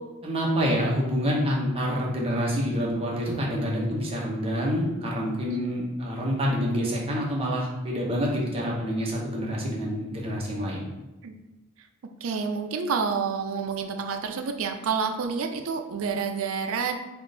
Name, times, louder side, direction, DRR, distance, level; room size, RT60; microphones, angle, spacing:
voice 1, 0.2-10.9, equal, 25° right, -3 dB, 0.8 m, -27 dB
voice 2, 12.2-17.0, right 5 dB, 65° right, 6 dB, 0.4 m, -29 dB
3.6 x 2.5 x 3.8 m, 1.0 s
head